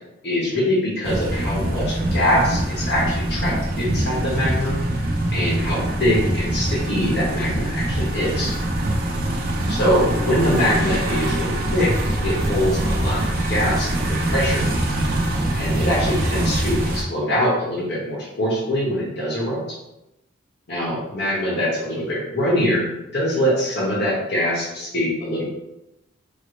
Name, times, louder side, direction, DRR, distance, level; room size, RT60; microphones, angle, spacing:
voice 1, 0.2-4.8 5.3-8.5 9.7-11.9 12.2-13.2 13.5-14.6 15.6-19.6 20.7-25.4, equal, 55° left, -5 dB, 1.0 m, -23 dB
sound 1, 1.0-17.0, right 1 dB, 50° right, 0.5 m, -23 dB
4.1 x 2.0 x 3.1 m, 0.90 s
head